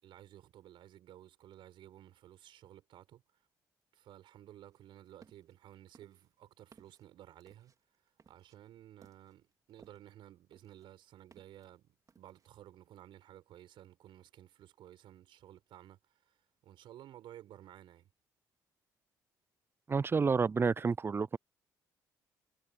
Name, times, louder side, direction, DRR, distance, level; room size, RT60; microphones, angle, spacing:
voice 1, 0.0-3.2 3.9-7.7 8.3-16.3 16.6-18.1, right 12 dB, 70° right, 4.7 m, -55 dB
sound 1, 4.7-5.5 5.9-10.2 10.5-11.7 12.1-12.6, right 5 dB, 40° right, 3.7 m, -64 dB
voice 2, 19.9-21.4, right 5 dB, 25° right, 0.4 m, -29 dB
hypercardioid pair, 50°, 9 cm